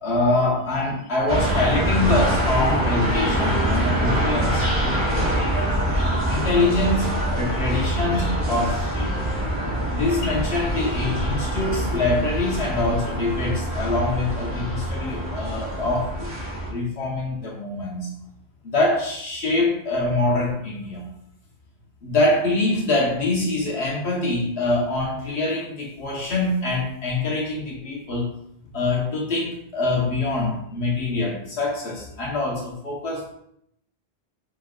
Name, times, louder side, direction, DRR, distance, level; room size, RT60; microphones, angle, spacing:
voice 1, 0.0-4.6 6.0-9.2 9.9-16.3 16.7-18.1 18.6-21.0 22.0-28.3 28.7-33.3, left 2 dB, 75° left, -2 dB, 1.3 m, -24 dB
sound 1, 1.3-16.7, equal, 55° right, 1.1 m, -24 dB
4.8 x 4.7 x 2.3 m, 0.71 s
omnidirectional pair, 1.1 m